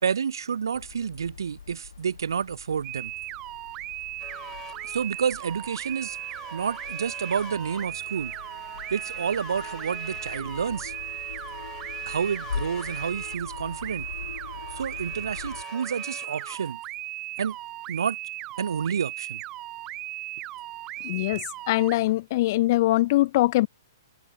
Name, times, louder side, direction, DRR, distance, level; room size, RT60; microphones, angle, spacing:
voice 1, 0.0-3.1 4.9-6.2 6.5-8.3 8.9-10.9 12.1-14.1 14.8-16.8 17.4-17.6 17.9-18.2 18.6-19.4, right 7 dB, 80° right, 3.8 m, -29 dB
sound 1, 0.7-15.6, left 6 dB, 80° left, 3.2 m, -42 dB
sound 2, 2.8-22.0, right 16 dB, 25° right, 1.3 m, -37 dB
sound 3, 4.2-16.7, left 12 dB, 20° left, 7.5 m, -47 dB
voice 2, 21.0-23.7, left 17 dB, 45° left, 0.5 m, -22 dB
hypercardioid pair, 140°, 2 cm